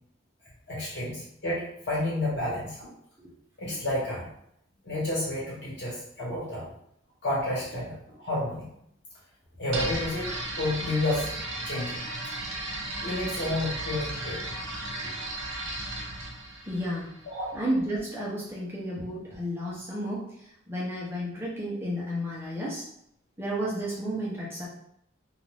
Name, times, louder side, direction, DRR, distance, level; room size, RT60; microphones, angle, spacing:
voice 1, 0.7-2.9 3.6-4.3 4.8-6.7 7.2-8.7 9.6-11.3 11.6-12.0 13.0-14.4 17.2-17.5, left 1 dB, 60° left, -7 dB, 1.4 m, -30 dB
sound 1, 9.7-17.5, right 1 dB, 75° right, 0.9 m, -35 dB
voice 2, 16.7-17.1 17.5-20.3 20.7-22.8 23.4-24.7, equal, 10° right, -6 dB, 0.6 m, -32 dB
2.5 x 2.4 x 3.2 m, 0.74 s
head